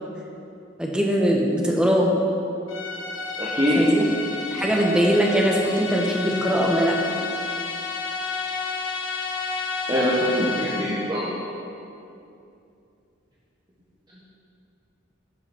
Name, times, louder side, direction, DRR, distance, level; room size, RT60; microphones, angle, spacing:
voice 1, 0.8-2.1 3.7-4.0 4.5-6.9, equal, 5° right, -2 dB, 1.1 m, -21 dB
sound 1, 2.7-11.1, left 4 dB, 85° left, 1.4 m, -31 dB
voice 2, 3.4-3.8 9.9-11.3, equal, 20° right, -7 dB, 1.1 m, -23 dB
10.5 x 5.8 x 6.1 m, 2.6 s
head